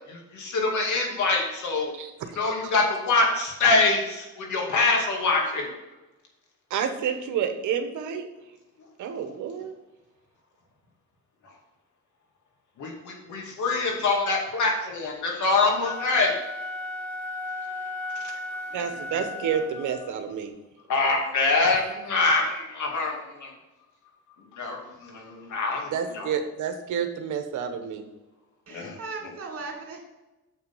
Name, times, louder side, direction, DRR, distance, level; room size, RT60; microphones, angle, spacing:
voice 1, 0.1-1.9 2.4-5.7 12.8-16.3 20.9-23.5 24.5-26.3 28.7-29.0, left 3 dB, 75° left, 0 dB, 2.4 m, -25 dB
voice 2, 6.7-8.3 9.0-9.7 18.7-20.5 25.9-28.0, right 7 dB, 80° right, 7 dB, 1.1 m, -29 dB
Wind instrument woodwind instrument, 15.7-20.1, left 2 dB, 5° left, 2.5 m, -35 dB
voice 3, 28.7-30.0, right 3 dB, 50° right, 1 dB, 2.6 m, -37 dB
7.1 x 5.7 x 5.5 m, 1.0 s
cardioid pair, 90°, 30 cm